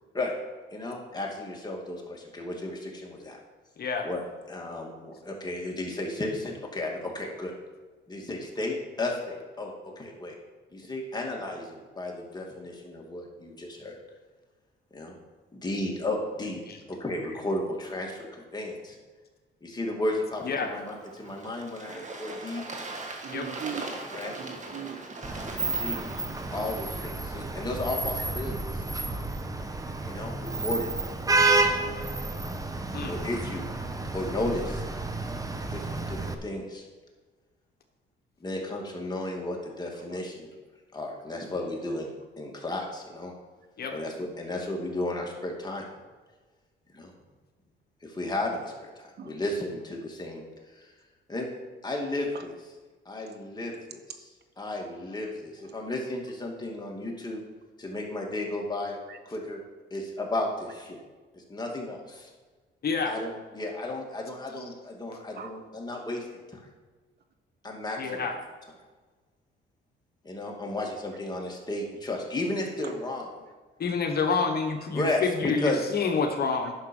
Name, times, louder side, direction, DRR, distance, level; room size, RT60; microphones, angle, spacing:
voice 1, 0.7-3.4 4.0-4.2 4.5-7.5 8.1-10.4 10.7-14.0 14.9-15.1 15.5-16.6 16.9-19.0 19.6-22.6 24.1-24.3 25.6-26.0 26.5-28.6 30.0-30.9 33.1-33.7 34.0-34.8 35.7-36.8 38.4-40.5 40.9-43.3 43.9-45.8 46.9-47.1 48.0-50.4 51.3-51.5 51.8-52.5 53.1-54.0 54.6-57.4 57.8-59.0 59.3-59.6 59.9-61.0 61.3-62.3 63.1-66.6 67.6-68.3 70.2-73.3 74.9-75.8, left 2 dB, 20° left, -1 dB, 2.4 m, -33 dB
voice 2, 3.8-4.1 16.7-16.8 20.4-20.7 23.3-23.5 32.9-33.1 43.8-43.9 62.8-63.1 68.0-68.3 73.8-76.7, left 4 dB, 50° left, 5 dB, 1.2 m, -28 dB
Bird / Water, 20.3-27.0, right 2 dB, 35° right, 1.7 m, -41 dB
voice 3, 23.2-23.9 24.4-25.0 29.0-29.3 39.9-40.2 41.3-41.4 49.2-49.4 52.3-52.5 59.1-59.2 65.1-65.6 72.8-72.9, right 8 dB, 55° right, 8 dB, 1.0 m, -40 dB
Vehicle horn car horn honking / Traffic noise roadway noise, 25.2-36.3, right 3 dB, 15° right, 0.9 m, -30 dB
10.5 x 6.1 x 5.4 m, 1.3 s
cardioid pair, 90°, 20 cm